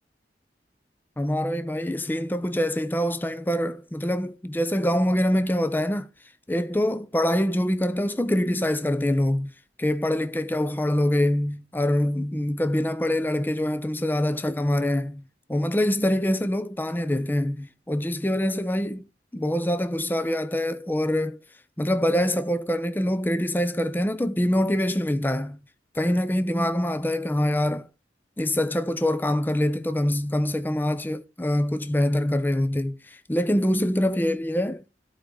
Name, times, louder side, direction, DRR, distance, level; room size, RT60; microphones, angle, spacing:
voice 1, 1.2-6.1 6.5-9.5 9.8-15.2 15.5-19.0 19.3-21.4 21.8-25.6 25.9-27.9 28.4-34.8, left 1 dB, 10° left, 0.4 m, -25 dB
12.0 x 4.8 x 3.8 m
head